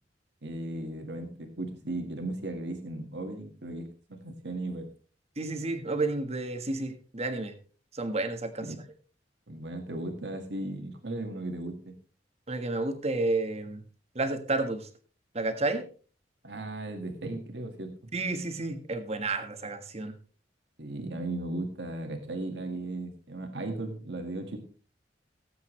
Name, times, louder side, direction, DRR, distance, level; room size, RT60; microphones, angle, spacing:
voice 1, 0.4-4.9 8.6-8.8 9.5-11.9 16.4-17.9 20.8-24.6, right 2 dB, 70° right, 4 dB, 2.0 m, -36 dB
voice 2, 5.4-7.5 7.9-8.7 12.5-13.8 14.1-14.9 15.3-15.9 18.1-20.1, right 2 dB, 35° right, 7 dB, 1.5 m, -31 dB
18.0 x 8.4 x 3.2 m, 0.39 s
head